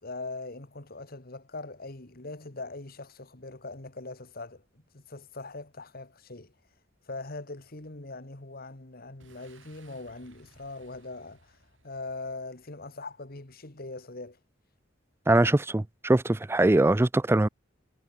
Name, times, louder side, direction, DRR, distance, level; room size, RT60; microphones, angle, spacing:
voice 1, 0.0-4.6 4.9-6.5 7.1-11.6 11.8-14.4, left 3 dB, 50° left, 2.0 m, -41 dB
Boom, 9.2-12.8, right 3 dB, 80° right, 6.6 m, -61 dB
voice 2, 15.3-17.5, right 2 dB, 15° right, 0.4 m, -22 dB
head